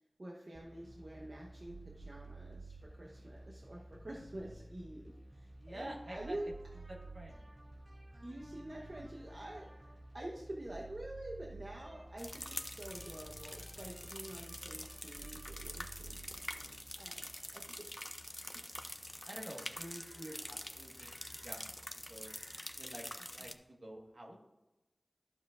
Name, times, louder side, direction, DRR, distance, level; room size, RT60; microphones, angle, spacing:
voice 1, 0.2-6.5 8.2-18.1 18.5-18.6, right 1 dB, 60° right, -2 dB, 0.9 m, -48 dB
sound 1, 0.5-17.9, right 2 dB, 25° right, 0.8 m, -53 dB
voice 2, 5.6-6.4 6.9-7.4 19.2-21.7 22.1-22.3 22.8-24.4, right 1 dB, 75° right, -1 dB, 1.4 m, -49 dB
sound 2, 12.2-23.5, left 1 dB, 15° left, 0.5 m, -46 dB
11.5 x 7.1 x 2.4 m, 0.98 s
wide cardioid pair, 45°, 0 cm